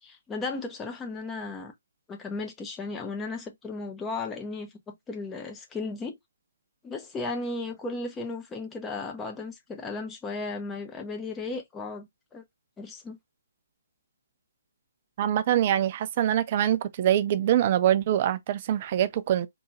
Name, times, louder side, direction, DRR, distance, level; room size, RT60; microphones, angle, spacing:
voice 1, 0.0-1.7 2.1-6.2 6.8-12.4 12.8-13.2, left 3 dB, 10° left, 0.7 m, -35 dB
voice 2, 15.2-19.5, right 11 dB, 35° right, 0.4 m, -24 dB
3.8 x 2.9 x 2.5 m
figure-of-eight pair, 135°, 0 cm